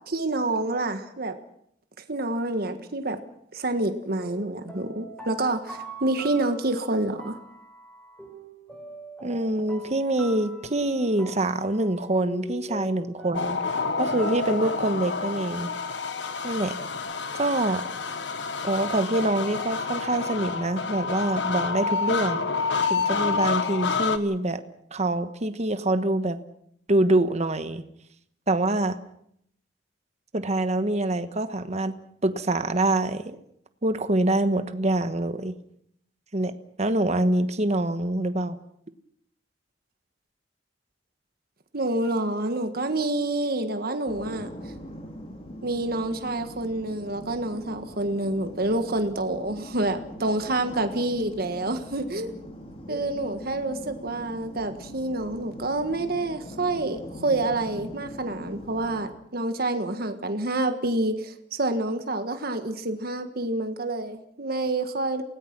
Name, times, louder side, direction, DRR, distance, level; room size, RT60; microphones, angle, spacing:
voice 1, 0.1-1.4 2.1-3.2 3.5-7.4 41.7-44.5 45.6-52.3 52.9-65.2, right 2 dB, 55° right, 7 dB, 1.6 m, -28 dB
sound 1, 4.1-14.8, equal, 5° left, 4.3 m, -43 dB
voice 2, 9.2-15.7 16.4-16.7 17.3-17.8 18.6-22.5 22.9-24.6 24.9-26.4 26.9-27.8 28.5-29.0 30.3-33.4 33.8-35.5 36.3-36.5 36.8-38.6, right 1 dB, 40° right, 10 dB, 1.3 m, -25 dB
sound 2, 13.3-24.2, left 4 dB, 70° left, 1.4 m, -28 dB
sound 3, 44.1-59.1, equal, 30° left, 3.3 m, -42 dB
28.5 x 18.0 x 6.1 m, 0.71 s
head